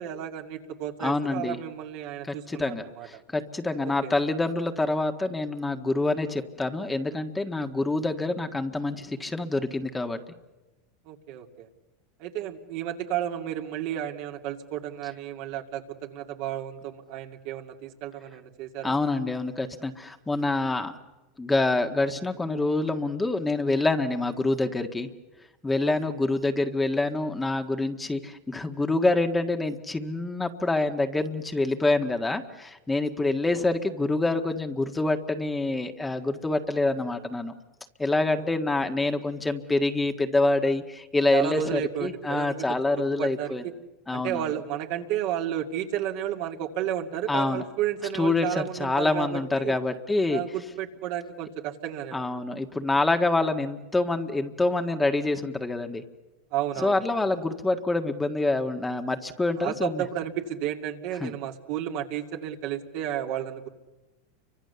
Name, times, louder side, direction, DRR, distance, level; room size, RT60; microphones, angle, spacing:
voice 1, 0.0-3.1 3.8-4.1 11.1-11.7 12.2-19.0 25.8-25.9 41.3-42.7 43.0-43.7 44.1-49.7 50.3-52.4 56.5-57.0 59.6-63.7, right 11 dB, 60° right, 3 dB, 2.4 m, -32 dB
voice 2, 1.0-1.6 2.2-10.2 18.8-20.9 21.4-25.1 25.6-37.5 38.0-43.6 44.1-44.5 47.3-47.6 48.1-50.4 52.1-56.0 56.8-60.0 61.2-61.3, left 2 dB, 10° left, 6 dB, 1.7 m, -26 dB
30.0 x 24.5 x 6.9 m, 1.1 s
hypercardioid pair, 105°, 0 cm